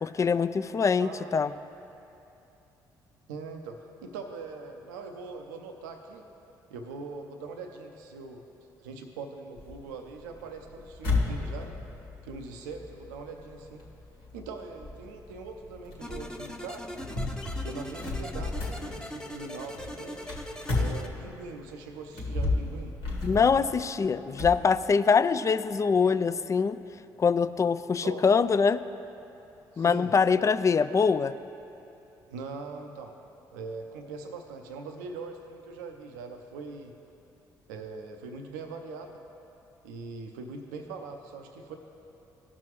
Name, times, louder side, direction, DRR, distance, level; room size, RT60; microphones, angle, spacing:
voice 1, 0.0-1.5 23.2-26.8 27.2-28.8 29.8-31.3, left 5 dB, 35° left, 13 dB, 0.4 m, -24 dB
voice 2, 1.0-1.6 3.3-6.3 6.7-8.4 8.8-11.8 12.2-13.8 14.3-16.8 17.6-20.2 20.8-23.0 28.0-28.2 29.7-30.1 32.3-33.1 33.5-36.9 37.7-39.1 39.8-41.8, right 4 dB, 85° right, 4 dB, 0.5 m, -41 dB
sound 1, 9.6-21.5 22.0-24.6, left 3 dB, 75° left, 1.7 m, -33 dB
sound 2, 16.0-21.1, equal, 10° left, 0.8 m, -41 dB
15.5 x 6.0 x 3.1 m, 2.9 s
hypercardioid pair, 50°, 10 cm